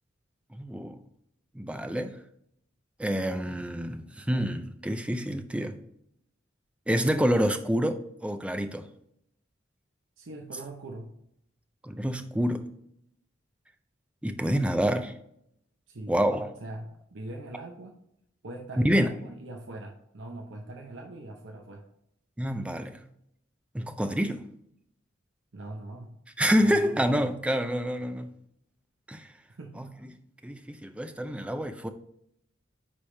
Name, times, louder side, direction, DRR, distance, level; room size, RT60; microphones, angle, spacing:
voice 1, 0.5-1.0 1.6-2.1 3.0-5.8 6.9-8.8 11.8-12.6 14.2-15.1 16.1-16.5 18.8-19.1 22.4-23.0 23.7-24.4 26.4-28.3 29.1-29.3 29.8-29.9 30.4-31.9, equal, 5° right, 0.4 m, -27 dB
voice 2, 10.2-11.1 15.9-16.1 16.6-18.0 18.4-21.8 25.5-26.2 26.6-27.0 29.5-29.9, right 2 dB, 70° right, 0.7 m, -42 dB
9.8 x 3.4 x 3.2 m
head